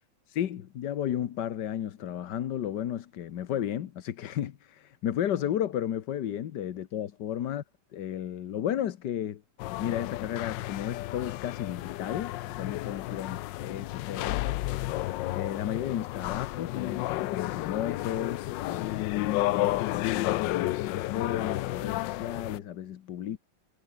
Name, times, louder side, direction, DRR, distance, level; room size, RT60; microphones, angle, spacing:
voice 1, 0.3-7.6 7.9-9.4 9.8-14.6 15.3-23.4, left 10 dB, 75° left, 1.6 m, -33 dB
sound 1, 9.6-22.6, left 16 dB, 90° left, 1.3 m, -32 dB
omnidirectional pair, 1.9 m